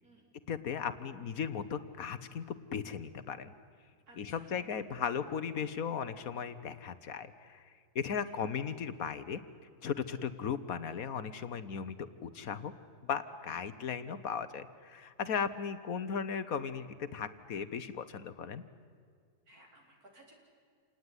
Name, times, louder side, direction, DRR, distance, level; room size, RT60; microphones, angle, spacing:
voice 1, 0.5-2.5 2.7-3.5 4.2-7.6 7.9-9.4 9.8-12.7 13.0-16.9 17.1-18.6, left 7 dB, 65° left, 13 dB, 1.4 m, -36 dB
voice 2, 4.1-4.6 8.3-8.4 10.1-10.2 15.9-16.1 19.5-20.3, right 1 dB, 70° right, 0 dB, 5.0 m, -60 dB
28.0 x 19.0 x 9.8 m, 2.1 s
omnidirectional pair, 1.7 m